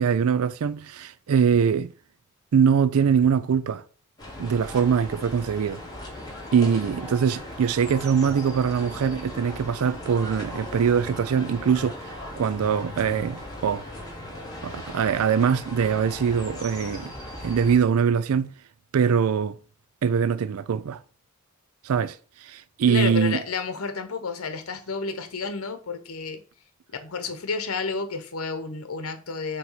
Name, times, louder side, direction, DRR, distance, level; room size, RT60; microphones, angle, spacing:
voice 1, 0.0-1.9 2.5-3.8 4.4-5.8 6.5-13.8 14.6-17.1 17.4-18.5 18.9-19.5 20.0-21.0 21.8-23.4, right 7 dB, 85° right, 0.4 m, -23 dB
sound 1, 4.2-17.8, left 1 dB, 20° left, 2.0 m, -38 dB
voice 2, 22.9-26.4 26.9-29.6, left 4 dB, 80° left, 0.9 m, -31 dB
6.0 x 3.1 x 5.6 m
head